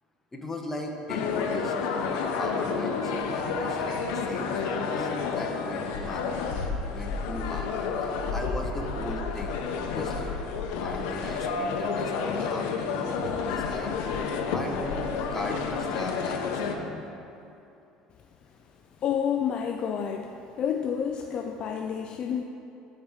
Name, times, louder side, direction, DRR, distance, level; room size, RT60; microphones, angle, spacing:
voice 1, 0.3-6.2 6.8-7.7 8.0-10.3 10.8-13.9 14.5-15.0 15.3-17.0, left 1 dB, 15° left, 1 dB, 0.9 m, -38 dB
sound 1, 1.1-16.7, left 5 dB, 85° left, 0.7 m, -30 dB
voice 2, 19.0-20.3 20.6-22.4, left 8 dB, 40° left, 4 dB, 0.3 m, -29 dB
13.0 x 4.5 x 3.6 m, 2.7 s
cardioid pair, 130°, 2 cm